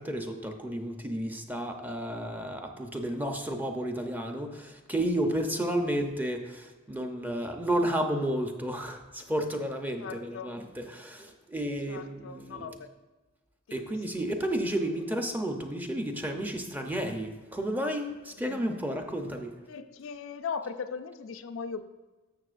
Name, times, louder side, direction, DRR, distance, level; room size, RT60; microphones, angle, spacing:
voice 1, 0.0-12.7 13.7-19.6, right 1 dB, 10° right, 4 dB, 0.6 m, -32 dB
voice 2, 10.0-10.6 11.9-12.9 18.5-18.6 19.7-21.8, left 6 dB, 65° left, 9 dB, 0.4 m, -38 dB
11.5 x 6.8 x 2.5 m, 1.3 s
head